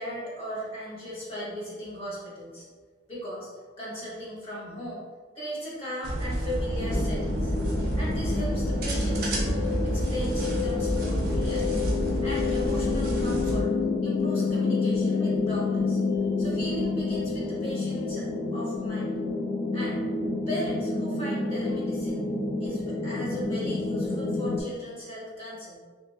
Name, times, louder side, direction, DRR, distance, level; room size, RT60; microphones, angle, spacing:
voice 1, 0.0-2.7 3.1-3.5 3.8-5.1 5.3-7.5 7.9-11.8 12.2-13.7 14.0-18.3 18.5-19.1 19.7-20.0 20.5-22.3 22.6-25.8, equal, 30° left, -7 dB, 0.9 m, -37 dB
sound 1, 6.0-13.6, equal, 55° right, 0.5 m, -29 dB
sound 2, 6.8-24.6, left 3 dB, 85° left, 0.5 m, -29 dB
2.9 x 2.5 x 2.3 m, 1.5 s
head